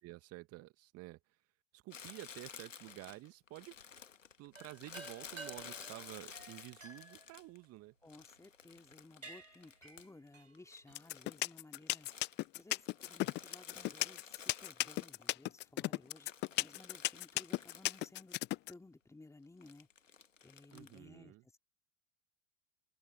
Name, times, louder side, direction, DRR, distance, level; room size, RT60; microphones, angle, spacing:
voice 1, 0.0-1.2 1.7-3.8 4.4-7.9 20.7-21.4, right 19 dB, 40° right, 2.0 m, -51 dB
Crumpling crinkling, 1.9-7.6 8.1-10.3 10.5-15.6 16.0-18.4 18.7-18.8 19.6-21.0, left 6 dB, 75° left, 2.2 m, -53 dB
sound 1, 4.5-8.2 8.8-8.9 9.2-11.1, right 3 dB, 85° right, 3.8 m, -53 dB
voice 2, 8.0-12.3 12.5-18.4 18.7-19.9 20.4-21.6, left 2 dB, 10° left, 2.9 m, -58 dB
sound 2, 11.0-18.7, left 19 dB, 30° left, 0.6 m, -34 dB
figure-of-eight pair, 80°, 38 cm